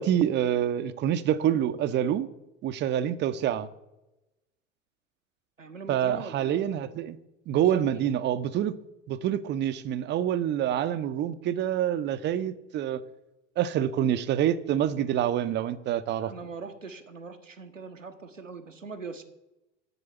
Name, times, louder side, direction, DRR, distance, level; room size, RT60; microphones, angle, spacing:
voice 1, 0.0-2.3 2.6-3.7 5.9-7.2 7.5-8.8 9.1-13.0 13.6-16.3, right 10 dB, 30° right, 0.6 m, -26 dB
voice 2, 5.6-6.6 7.6-8.0 16.2-19.2, right 4 dB, 90° right, 1.0 m, -41 dB
8.1 x 6.9 x 6.7 m
figure-of-eight pair, 75°, 37 cm